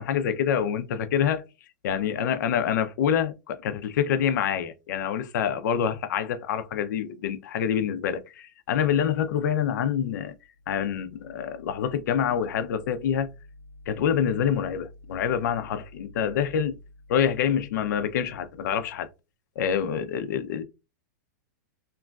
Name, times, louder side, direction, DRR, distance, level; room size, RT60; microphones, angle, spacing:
voice 1, 0.0-1.4 1.8-10.3 10.7-13.3 13.9-16.8 17.1-19.1 19.6-20.6, left 8 dB, 70° left, 0.5 m, -26 dB
3.0 x 2.4 x 2.2 m
hypercardioid pair, 140°, 10 cm